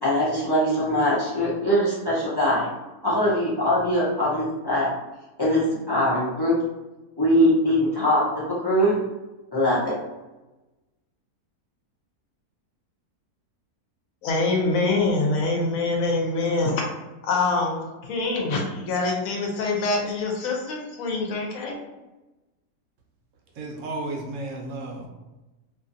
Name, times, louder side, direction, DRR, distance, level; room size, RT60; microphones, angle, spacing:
voice 1, 0.0-2.7 3.0-4.9 5.4-6.6 7.2-9.0 9.5-10.0, equal, 35° left, -9 dB, 0.4 m, -22 dB
voice 2, 14.2-16.8 17.2-21.8, left 3 dB, 70° left, 0 dB, 1.0 m, -25 dB
voice 3, 23.5-25.1, right 2 dB, 65° right, 1 dB, 0.9 m, -33 dB
2.6 x 2.5 x 2.5 m, 1.1 s
omnidirectional pair, 1.6 m